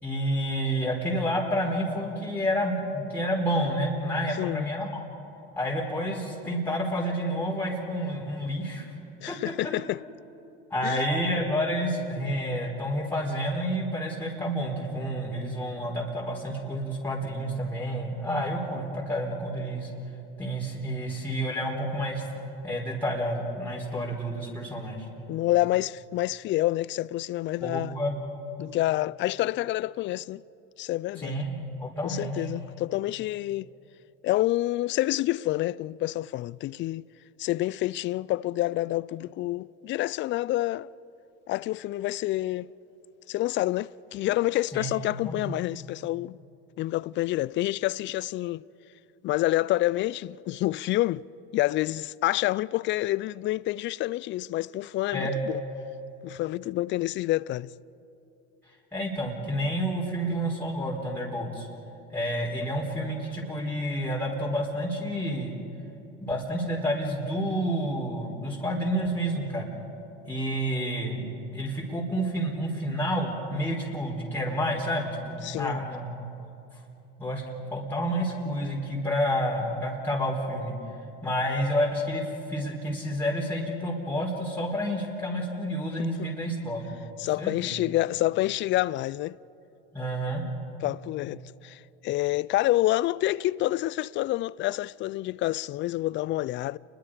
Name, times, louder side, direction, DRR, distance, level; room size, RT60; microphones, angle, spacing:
voice 1, 0.0-5.0 5.6-8.9 9.3-9.4 9.6-9.7 10.7-19.9 20.4-22.2 22.6-25.1 27.6-28.2 31.2-32.5 44.7-44.9 45.2-45.5 55.1-55.3 58.9-61.7 62.1-65.5 66.2-69.7 70.2-71.3 71.5-76.1 77.2-77.4 77.7-80.7 81.2-86.9 87.4-87.8 89.9-90.4, equal, 5° left, 4.4 m, -29 dB
voice 2, 4.4-4.7 9.2-10.0 10.8-11.0 25.3-28.0 28.6-30.4 30.8-31.4 32.0-33.7 34.2-37.0 37.4-40.9 41.5-42.7 43.3-46.4 46.8-48.6 49.2-51.2 51.5-55.6 56.2-57.7 75.4-75.9 86.2-86.3 87.2-89.4 90.8-96.8, left 16 dB, 40° left, 0.4 m, -28 dB
29.5 x 22.0 x 5.1 m
hypercardioid pair, 95°, 30 cm